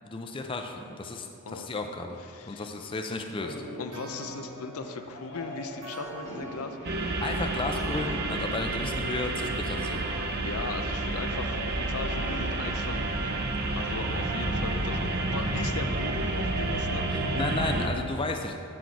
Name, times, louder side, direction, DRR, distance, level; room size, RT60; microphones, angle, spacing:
voice 1, 0.0-2.2 2.5-3.5 7.2-10.0 17.1-18.6, left 3 dB, 25° left, 4 dB, 0.4 m, -33 dB
voice 2, 2.3-2.7 3.8-7.2 10.4-13.3 13.7-17.4, left 4 dB, 75° left, 7 dB, 0.5 m, -38 dB
sound 1, 3.4-15.8, equal, 50° left, 1.2 m, -44 dB
sound 2, 3.9-11.6, right 2 dB, 65° right, 1.1 m, -45 dB
sound 3, 6.8-17.9, right 2 dB, 45° right, 0.7 m, -30 dB
8.9 x 6.2 x 4.6 m, 2.6 s
head